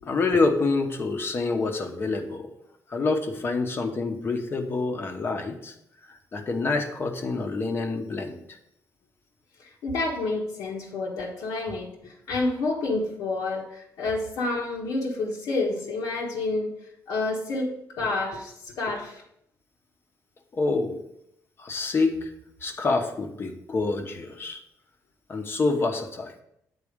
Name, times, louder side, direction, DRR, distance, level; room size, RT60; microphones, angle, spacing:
voice 1, 0.0-2.5 2.9-5.7 6.1-8.6 20.5-21.0 21.6-22.3 22.6-24.6 25.3-26.3, left 3 dB, 40° left, 4 dB, 1.0 m, -27 dB
voice 2, 9.6-16.7 17.1-19.2, left 3 dB, 85° left, -5 dB, 1.3 m, -29 dB
8.4 x 4.1 x 5.1 m, 0.76 s
cardioid pair, 115°, 6 cm